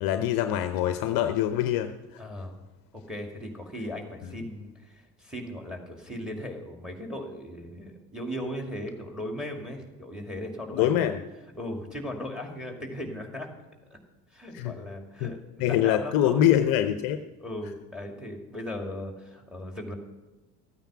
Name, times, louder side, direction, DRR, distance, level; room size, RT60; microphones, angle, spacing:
voice 1, 0.0-1.9 10.7-11.2 14.5-14.7 15.2-15.3 15.6-17.2, left 11 dB, 45° left, 10 dB, 0.8 m, -24 dB
voice 2, 2.2-2.6 2.9-11.1 11.5-13.5 13.9-14.0 14.3-16.4 17.4-19.9, left 1 dB, ahead, 3 dB, 2.4 m, -37 dB
14.0 x 9.0 x 5.8 m, 1.1 s
figure-of-eight pair, 70°, 49 cm